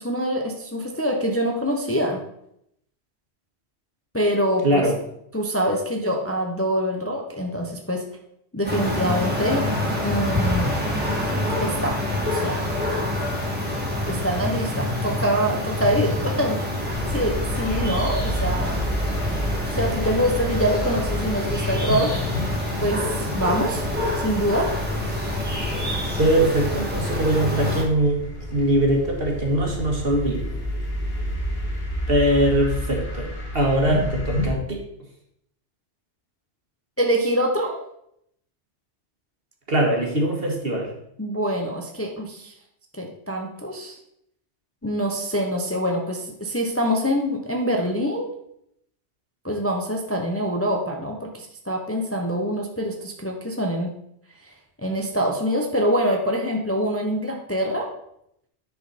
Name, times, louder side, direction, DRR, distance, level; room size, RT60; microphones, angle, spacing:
voice 1, 0.0-2.2 4.1-4.9 5.3-8.0 8.5-9.7 10.0-10.8 11.6-12.0 12.3-12.7 14.1-16.6 17.1-18.8 19.7-22.2 22.8-23.1 23.3-23.8 24.2-24.7 37.0-37.8 41.2-42.5 42.9-44.0 44.8-48.3 49.4-53.9 54.8-57.9, equal, 15° left, 1 dB, 0.8 m, -25 dB
voice 2, 4.6-5.0 26.2-28.2 28.5-30.5 32.1-33.3 33.5-34.8 39.7-40.9, right 1 dB, 55° right, 1 dB, 1.9 m, -21 dB
sound 1, 8.6-27.8, left 1 dB, 10° right, 2.1 m, -26 dB
sound 2, 16.8-34.5, equal, 55° left, 2.1 m, -30 dB
9.6 x 5.4 x 4.2 m, 0.76 s
omnidirectional pair, 1.2 m